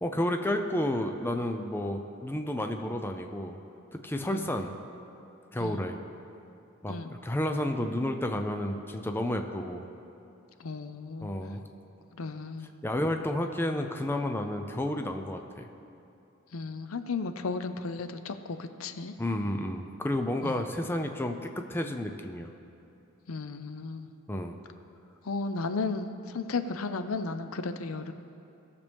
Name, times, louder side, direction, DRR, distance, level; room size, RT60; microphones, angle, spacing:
voice 1, 0.0-3.6 3.9-4.7 5.5-6.0 6.8-7.0 7.2-9.9 11.2-11.6 12.8-15.7 19.2-22.5 24.3-24.6, left 1 dB, 10° left, 4 dB, 0.5 m, -31 dB
voice 2, 10.6-11.3 12.2-12.7 16.5-19.1 20.4-20.7 23.3-24.1 25.2-28.1, left 4 dB, 80° left, 9 dB, 0.6 m, -34 dB
18.5 x 6.8 x 3.5 m, 2.7 s
head